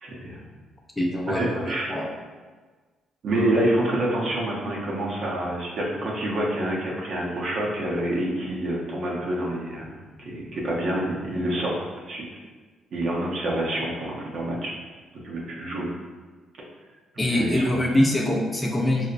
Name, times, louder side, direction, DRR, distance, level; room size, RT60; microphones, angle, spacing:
voice 1, 0.0-0.4 1.3-1.9 3.2-11.8 12.1-12.2 12.9-14.7 15.2-15.9 17.1-17.6, right 1 dB, 60° right, -3 dB, 0.7 m, -27 dB
voice 2, 1.0-2.1 17.2-19.1, left 1 dB, 10° left, -2 dB, 0.4 m, -23 dB
4.2 x 2.1 x 2.5 m, 1.4 s
cardioid pair, 90°, 0 cm